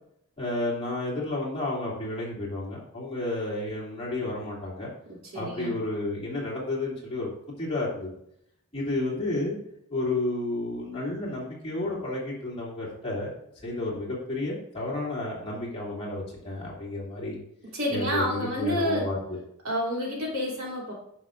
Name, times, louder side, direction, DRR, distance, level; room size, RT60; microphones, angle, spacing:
voice 1, 0.4-4.9 5.3-7.3 7.6-8.1 8.7-9.6 9.9-13.3 13.6-17.4 17.9-19.2, left 2 dB, 25° left, -5 dB, 2.6 m, -31 dB
voice 2, 5.1-5.7 17.7-19.1 19.6-20.9, equal, 70° right, -4 dB, 2.8 m, -29 dB
9.6 x 6.2 x 2.5 m, 0.74 s
head